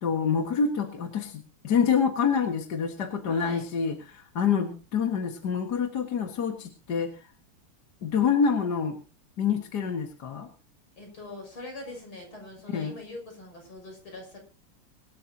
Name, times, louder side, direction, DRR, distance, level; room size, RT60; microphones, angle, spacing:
voice 1, 0.0-7.3 8.0-9.0 9.4-10.5 12.7-12.9, left 6 dB, 50° left, 4 dB, 2.2 m, -27 dB
voice 2, 3.3-3.7 11.0-14.4, left 1 dB, 75° left, 3 dB, 7.2 m, -42 dB
24.0 x 12.0 x 2.8 m, 0.33 s
omnidirectional pair, 2.3 m